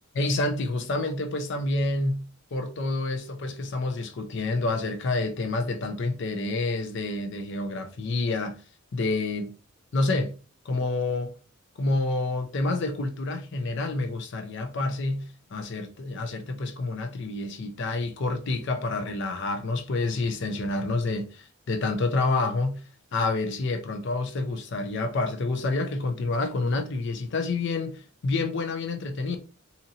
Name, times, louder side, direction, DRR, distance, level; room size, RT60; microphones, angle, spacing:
voice 1, 0.1-8.6 8.9-9.5 9.9-10.3 10.6-11.3 11.8-22.8 23.1-29.4, left 2 dB, 55° left, 0.5 m, -28 dB
2.8 x 2.6 x 2.6 m
head